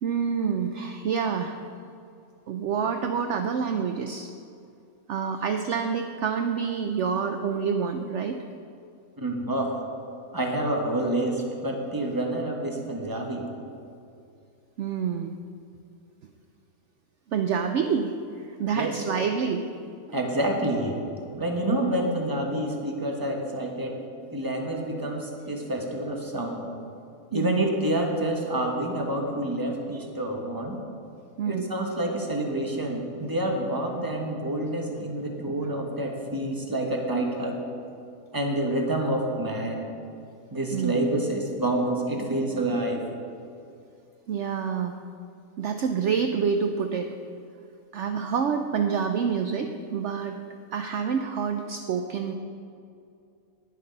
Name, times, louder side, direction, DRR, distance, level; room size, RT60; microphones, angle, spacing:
voice 1, 0.0-1.6 2.5-4.3 5.1-8.4 14.8-15.4 17.3-19.6 27.3-27.6 31.4-31.7 40.7-41.0 44.3-45.0 45.6-47.1 47.9-50.4 50.7-52.3, right 6 dB, 65° right, 6 dB, 0.9 m, -27 dB
voice 2, 9.2-9.8 10.3-13.5 18.7-18.9 20.1-21.0 21.3-24.0 24.3-26.7 27.3-30.8 31.4-37.6 38.3-39.9 40.5-43.0, right 1 dB, 15° right, 1 dB, 1.4 m, -28 dB
19.5 x 6.7 x 5.3 m, 2.5 s
omnidirectional pair, 1.5 m